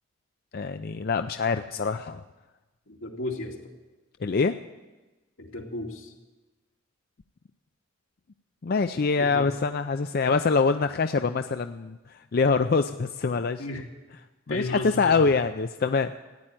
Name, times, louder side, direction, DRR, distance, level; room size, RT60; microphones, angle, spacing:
voice 1, 0.5-2.2 4.2-4.6 8.6-13.6 14.5-16.1, left 4 dB, 50° left, 8 dB, 0.4 m, -25 dB
voice 2, 2.9-3.6 5.4-6.1 9.2-9.5 13.6-13.9 14.5-15.3, left 2 dB, 85° left, 1 dB, 2.3 m, -34 dB
14.5 x 9.8 x 9.0 m, 1.1 s
head